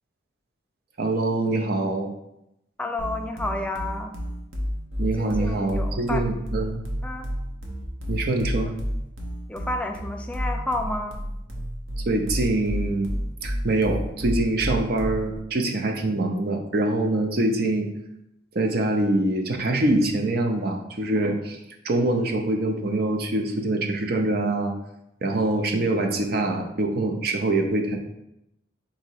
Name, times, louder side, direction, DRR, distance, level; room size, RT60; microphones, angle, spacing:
voice 1, 1.0-2.1 5.0-6.8 8.1-8.7 12.1-13.2 13.4-17.9 18.5-21.6 21.8-24.7 25.2-28.0, right 2 dB, 50° right, 4 dB, 0.5 m, -24 dB
voice 2, 2.8-4.2 5.0-6.2 7.0-7.3 8.6-8.7 9.5-11.2, left 2 dB, 5° left, 3 dB, 0.3 m, -31 dB
sound 1, 3.0-15.4, equal, 90° right, 0.9 m, -30 dB
3.9 x 2.8 x 4.5 m, 0.84 s
head